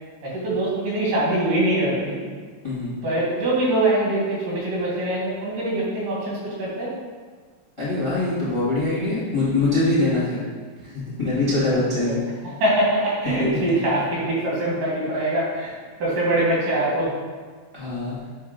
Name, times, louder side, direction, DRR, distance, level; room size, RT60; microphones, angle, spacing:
voice 1, 0.2-2.2 3.0-6.9 12.1-12.2 12.4-15.7 16.0-17.1, right 1 dB, 80° right, -6 dB, 3.3 m, -23 dB
voice 2, 2.6-3.0 7.8-10.4 10.8-12.2 17.7-18.2, left 2 dB, 25° left, -8 dB, 0.7 m, -23 dB
7.7 x 2.7 x 5.0 m, 1.5 s
omnidirectional pair, 3.6 m